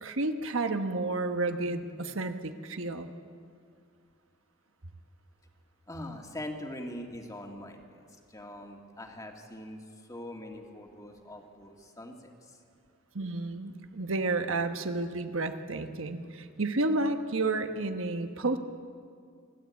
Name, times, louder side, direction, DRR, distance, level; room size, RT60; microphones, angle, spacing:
voice 1, 0.0-3.1 13.1-18.6, right 2 dB, 75° right, 8 dB, 1.2 m, -31 dB
voice 2, 5.9-12.6, left 1 dB, 15° left, 2 dB, 2.0 m, -43 dB
26.5 x 12.0 x 8.4 m, 2.3 s
head